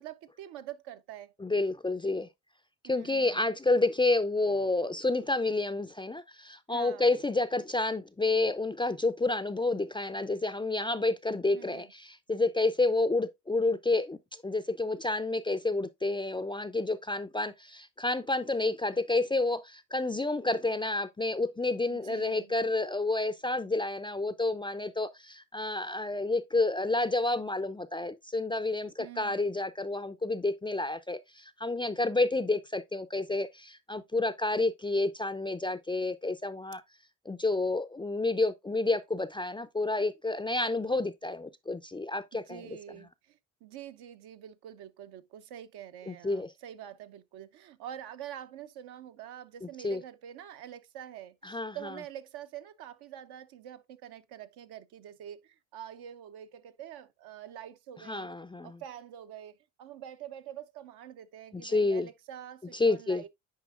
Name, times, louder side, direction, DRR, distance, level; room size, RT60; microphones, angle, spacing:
voice 1, 0.0-1.3 2.8-3.5 6.7-7.1 11.5-11.9 21.9-22.5 29.0-29.5 42.3-58.3 58.6-59.5 59.8-63.3, right 10 dB, 65° right, 0.8 m, -46 dB
voice 2, 1.4-2.3 2.8-14.2 14.4-36.8 37.3-42.6 46.1-46.5 49.8-50.0 51.4-51.9 58.0-58.8 61.5-62.1 62.7-63.2, left 2 dB, 10° left, 0.4 m, -29 dB
9.4 x 4.7 x 2.4 m
supercardioid pair, 65°, 41 cm